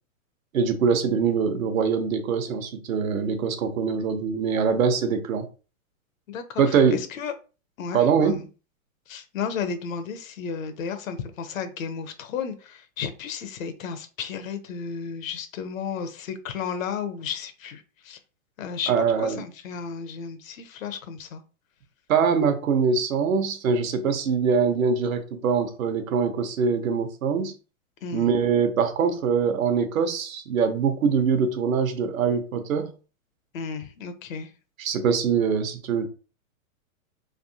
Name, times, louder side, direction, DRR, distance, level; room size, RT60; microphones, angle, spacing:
voice 1, 0.5-5.5 6.6-7.0 7.9-8.4 18.9-19.4 22.1-27.5 28.1-32.9 34.8-36.1, right 6 dB, 70° right, 0.9 m, -23 dB
voice 2, 6.3-6.6 6.9-7.3 7.8-8.4 9.1-17.8 18.1-18.2 18.6-18.9 19.2-21.4 28.0-28.3 33.5-34.5, left 6 dB, 65° left, 0.8 m, -33 dB
3.4 x 2.8 x 2.7 m
hypercardioid pair, 155°, 42 cm